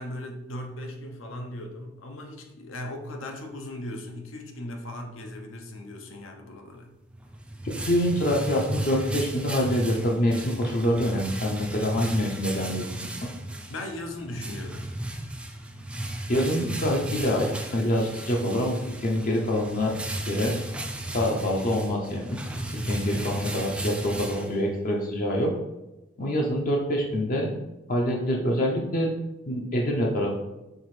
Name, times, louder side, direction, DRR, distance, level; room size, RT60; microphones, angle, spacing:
voice 1, 0.0-7.0 13.7-14.9, left 1 dB, 80° left, 4 dB, 0.7 m, -38 dB
sound 1, 7.1-25.0, right 1 dB, 5° right, 0.3 m, -34 dB
voice 2, 7.9-13.1 16.3-19.9 20.3-20.5 21.1-22.4 22.7-25.5 26.2-27.5 27.9-29.1 29.5-30.4, equal, 45° left, -1 dB, 0.5 m, -26 dB
4.6 x 3.3 x 3.1 m, 1.0 s
head